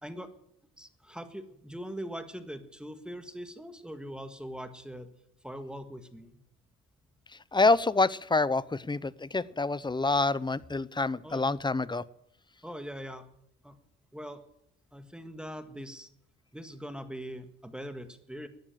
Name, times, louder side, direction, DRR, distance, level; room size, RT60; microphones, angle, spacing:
voice 1, 0.0-0.3 0.8-5.1 5.4-6.4 11.2-11.5 12.6-13.3 13.6-13.8 14.1-14.4 14.9-16.1 16.5-18.5, equal, 5° right, 9 dB, 1.7 m, -41 dB
voice 2, 7.5-12.0, left 3 dB, 15° left, 19 dB, 0.6 m, -27 dB
12.5 x 9.8 x 9.1 m, 0.75 s
cardioid pair, 90°, 30 cm